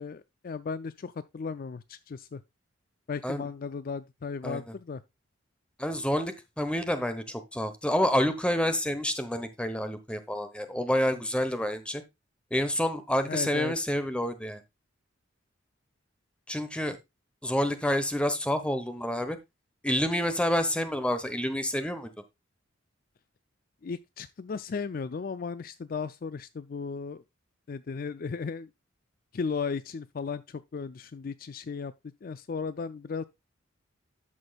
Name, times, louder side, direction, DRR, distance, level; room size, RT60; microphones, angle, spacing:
voice 1, 0.0-2.4 3.1-5.0 13.3-13.7 23.8-27.2 27.7-28.7 29.3-31.9 32.2-33.2, left 5 dB, 45° left, 0.4 m, -35 dB
voice 2, 5.8-12.0 12.5-14.6 16.5-17.0 17.4-19.4 19.8-22.1, left 1 dB, 5° left, 1.0 m, -28 dB
13.0 x 6.2 x 2.3 m
head